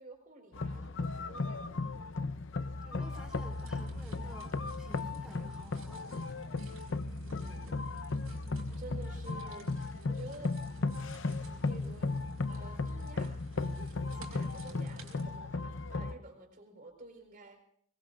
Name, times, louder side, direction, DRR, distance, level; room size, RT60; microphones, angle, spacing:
voice 1, 0.0-1.7 7.3-7.8 8.8-10.8 11.6-12.1 12.5-13.4 14.1-17.6, right 2 dB, 40° right, 3 dB, 4.6 m, -51 dB
sound 1, 0.5-16.2, left 3 dB, 60° left, 0.7 m, -36 dB
voice 2, 2.8-6.3 8.4-8.8, equal, 5° right, 1 dB, 4.0 m, -53 dB
sound 2, 3.1-15.2, right 1 dB, 75° right, 5.1 m, -51 dB
24.5 x 21.5 x 2.5 m, 0.64 s
head